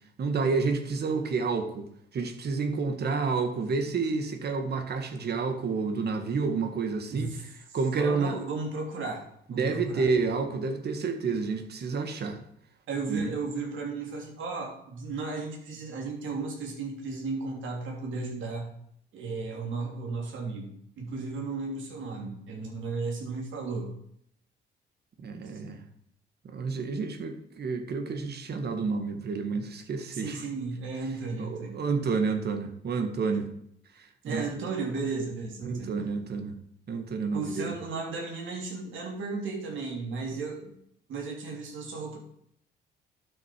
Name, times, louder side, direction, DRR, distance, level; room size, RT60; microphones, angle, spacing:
voice 1, 0.2-7.3 7.7-8.4 9.5-12.4 13.1-13.3 25.2-25.8 26.4-30.4 31.4-33.5 34.0-34.5 35.6-36.5 36.9-37.7, right 4 dB, 55° right, 7 dB, 1.8 m, -29 dB
voice 2, 7.1-7.4 7.9-9.2 9.5-10.1 12.9-18.7 19.1-20.7 21.0-23.9 25.5-25.6 30.1-31.8 34.2-36.0 37.3-40.7 41.1-42.2, right 4 dB, 75° right, 0 dB, 3.4 m, -34 dB
11.5 x 6.7 x 4.7 m, 0.71 s
cardioid pair, 90°, 20 cm